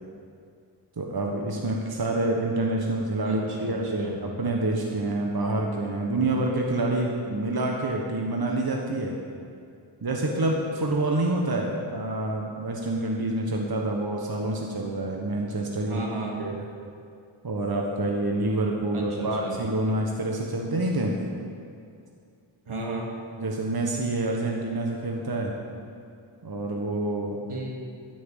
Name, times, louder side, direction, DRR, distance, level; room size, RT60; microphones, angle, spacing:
voice 1, 1.0-9.2 10.0-16.0 16.4-16.6 17.4-21.2 23.4-25.5 26.4-27.4, right 2 dB, 45° right, 0 dB, 1.4 m, -27 dB
voice 2, 3.2-4.2 15.8-16.4 18.9-19.6 22.7-23.1 27.5-27.7, right 2 dB, 80° right, -2 dB, 2.5 m, -34 dB
13.0 x 6.3 x 9.0 m, 2.4 s
wide cardioid pair, 85°, 49 cm